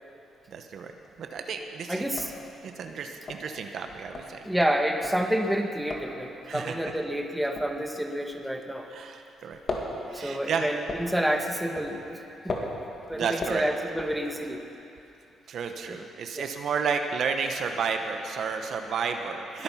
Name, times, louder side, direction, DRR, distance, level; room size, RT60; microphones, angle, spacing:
voice 1, 0.5-0.9 1.2-2.0 2.6-4.4 6.5-6.8 8.9-9.8 10.1-10.7 13.1-13.7 15.5-19.6, right 5 dB, 65° right, 5 dB, 1.0 m, -32 dB
sound 1, 0.8-1.3 1.6-1.7 2.0-9.1 9.3-14.7, left 3 dB, 45° left, 2.1 m, -38 dB
voice 2, 1.9-2.3 4.4-8.9 10.1-12.8 13.1-14.6 15.9-16.0 16.3-16.5, equal, 5° right, 4 dB, 1.2 m, -29 dB
20.5 x 8.8 x 5.8 m, 2.7 s
cardioid pair, 90°, 0 cm